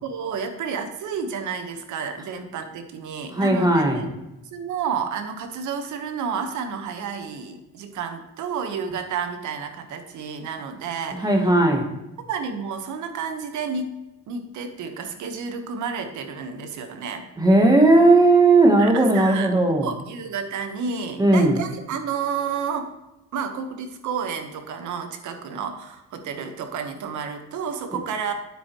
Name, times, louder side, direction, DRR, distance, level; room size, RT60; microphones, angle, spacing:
voice 1, 0.0-4.1 4.5-11.4 12.3-14.0 14.3-17.3 18.8-22.9 23.3-28.3, right 6 dB, 65° right, 7 dB, 1.2 m, -31 dB
voice 2, 3.3-4.1 11.2-11.9 17.4-19.9 21.2-21.6, right 2 dB, 10° right, 2 dB, 1.1 m, -16 dB
9.6 x 8.1 x 3.0 m, 0.93 s
cardioid pair, 155°, 32 cm